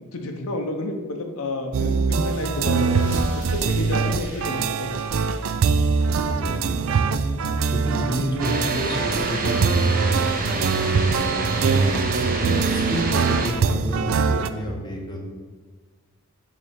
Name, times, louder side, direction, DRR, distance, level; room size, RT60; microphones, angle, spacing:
voice 1, 0.1-3.1 3.4-4.9 7.9-8.0, left 2 dB, 75° left, 3 dB, 0.7 m, -30 dB
sound 1, 1.7-14.5, right 5 dB, 60° right, 0.3 m, -23 dB
sound 2, 2.2-7.4, equal, 10° right, 2.2 m, -38 dB
voice 2, 6.1-7.2 7.7-12.0 12.4-15.2, equal, 20° left, 0 dB, 1.0 m, -30 dB
sound 3, 8.4-13.5, right 2 dB, 40° right, 0.7 m, -28 dB
7.2 x 3.2 x 5.6 m, 1.4 s
head